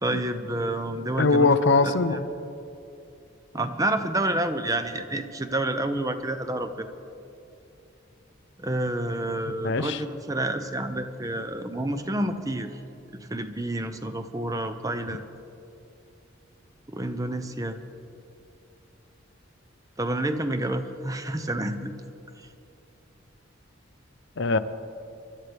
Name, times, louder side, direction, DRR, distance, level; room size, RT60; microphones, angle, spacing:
voice 1, 0.0-1.5 1.8-2.2 3.5-6.9 8.6-12.8 13.1-15.2 16.9-17.8 20.0-22.0 22.4-22.5, right 1 dB, 15° right, 8 dB, 0.6 m, -29 dB
voice 2, 1.2-2.2 9.5-10.0 24.4-24.6, left 3 dB, 60° left, 11 dB, 0.6 m, -22 dB
24.0 x 12.5 x 3.4 m, 2.7 s
head